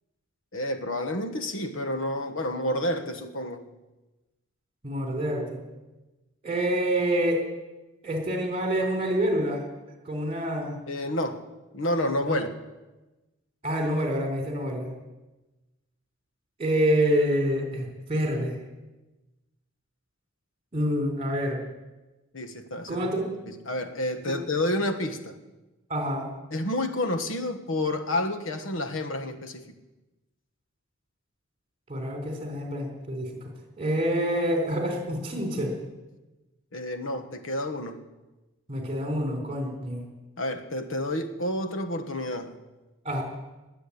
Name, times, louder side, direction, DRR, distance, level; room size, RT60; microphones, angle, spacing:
voice 1, 0.5-3.7 10.9-11.4 11.7-12.5 22.3-23.1 23.5-25.3 26.5-29.7 36.7-38.0 40.4-42.5, left 1 dB, 65° left, 7 dB, 1.4 m, -29 dB
voice 2, 4.8-5.6 6.4-7.4 8.0-9.7 10.1-10.8 12.2-12.4 13.6-14.9 16.6-18.6 20.7-21.6 22.9-23.2 24.3-24.4 25.9-26.3 31.9-33.3 33.8-35.7 38.7-40.1 43.0-43.2, equal, 30° right, 2 dB, 3.8 m, -27 dB
20.5 x 7.7 x 8.6 m, 1.1 s
head